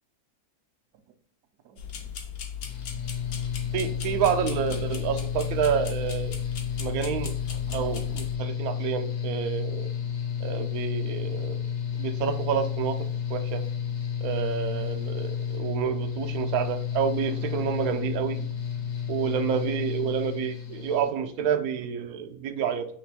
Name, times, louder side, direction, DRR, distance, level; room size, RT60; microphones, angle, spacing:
sound 1, 1.8-8.4, left 8 dB, 70° left, 1.2 m, -37 dB
Mechanical fan, 2.6-21.1, left 8 dB, 85° left, 1.3 m, -32 dB
voice 1, 3.7-6.4 6.8-9.9 10.4-11.6 12.0-13.0 13.3-13.7 14.2-18.5 19.1-22.9, right 8 dB, 75° right, 6 dB, 1.0 m, -29 dB
3.2 x 3.1 x 4.5 m, 0.63 s
omnidirectional pair, 1.6 m